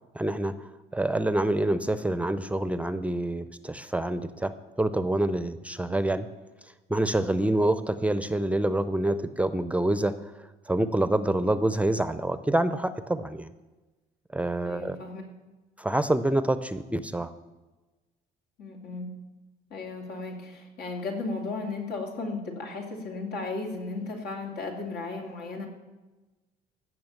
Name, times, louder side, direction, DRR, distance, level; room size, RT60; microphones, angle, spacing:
voice 1, 0.1-4.5 4.8-6.3 6.9-10.1 10.4-13.5 14.3-15.0 15.8-17.3, right 1 dB, 10° right, 12 dB, 0.5 m, -27 dB
voice 2, 14.6-15.2 18.6-19.1 19.7-25.7, left 3 dB, 85° left, 0 dB, 2.8 m, -35 dB
15.5 x 6.0 x 7.2 m, 1.2 s
cardioid pair, 110°, 17 cm